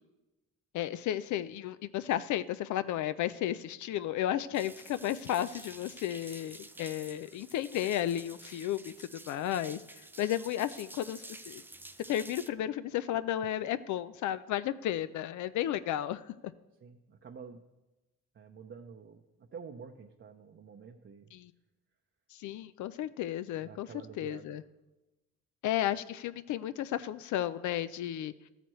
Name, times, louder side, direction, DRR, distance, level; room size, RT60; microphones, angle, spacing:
voice 1, 0.7-11.6 12.1-16.3 21.3-21.5 22.3-23.9 24.2-24.6 25.6-28.3, left 12 dB, 75° left, 14 dB, 0.4 m, -33 dB
sound 1, 4.5-12.5, right 2 dB, 5° right, 0.4 m, -50 dB
voice 2, 16.8-17.6 18.3-21.3 23.6-24.6, right 6 dB, 40° right, 3 dB, 0.7 m, -49 dB
13.5 x 9.1 x 3.1 m, 1.0 s
cardioid pair, 90°, 30 cm